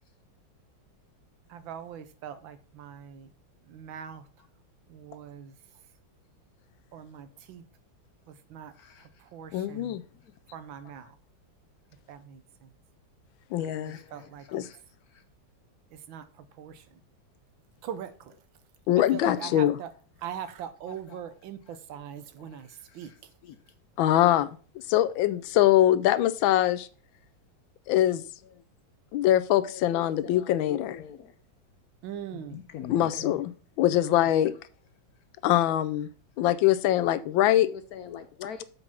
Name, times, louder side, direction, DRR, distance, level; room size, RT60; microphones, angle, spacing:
voice 1, 1.5-3.3 3.6-4.3 4.9-5.6 6.9-7.6 8.3-8.7 9.0-10.0 10.5-11.1 12.1-12.7 13.6-14.7 15.9-17.0 17.8-18.3 19.1-19.9 20.2-23.3 32.0-32.6 33.2-33.4 34.1-34.3, right 8 dB, 80° right, 1.6 m, -42 dB
voice 2, 8.7-9.1 13.9-14.8 19.3-19.5 21.1-21.2 22.4-22.6 22.9-23.0 23.4-23.5 29.7-31.3 32.3-33.3 37.5-38.6, left 9 dB, 70° left, 0.9 m, -43 dB
voice 3, 9.5-10.0 13.5-14.0 14.5-14.6 18.9-19.8 24.0-24.5 24.9-26.9 27.9-28.2 29.1-31.0 32.9-34.5 35.4-36.1 36.4-37.7, left 13 dB, 85° left, 1.4 m, -23 dB
7.1 x 5.2 x 5.8 m
omnidirectional pair, 2.1 m